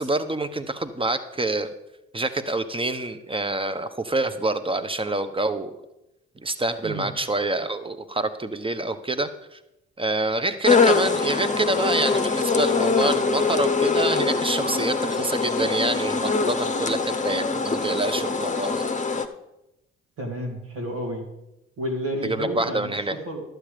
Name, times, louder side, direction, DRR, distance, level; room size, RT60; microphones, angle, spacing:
voice 1, 0.0-1.7 2.1-5.8 6.4-9.6 10.0-18.9 22.2-23.2, right 2 dB, 15° right, 10 dB, 1.0 m, -27 dB
sound 1, 10.6-19.3, left 4 dB, 20° left, 0.9 m, -23 dB
voice 2, 20.2-21.2 21.8-23.4, equal, 80° right, -1 dB, 2.5 m, -31 dB
11.5 x 7.6 x 5.0 m, 0.90 s
hypercardioid pair, 45°, 32 cm